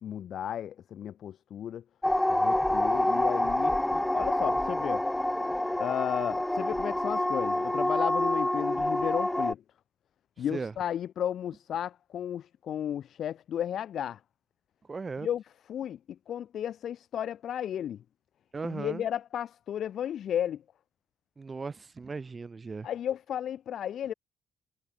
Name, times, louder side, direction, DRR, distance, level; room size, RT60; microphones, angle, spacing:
voice 1, 0.0-1.8 2.3-5.0 5.8-9.6 10.4-14.2 15.2-15.4 15.7-18.0 18.6-20.6 22.8-24.1, left 10 dB, 65° left, 1.4 m, -34 dB
sound 1, 2.0-9.5, left 1 dB, 10° left, 0.7 m, -27 dB
voice 2, 10.4-10.7 14.9-15.3 18.5-19.0 21.4-22.9, right 4 dB, 30° right, 2.0 m, -37 dB
cardioid pair, 90°, 0 cm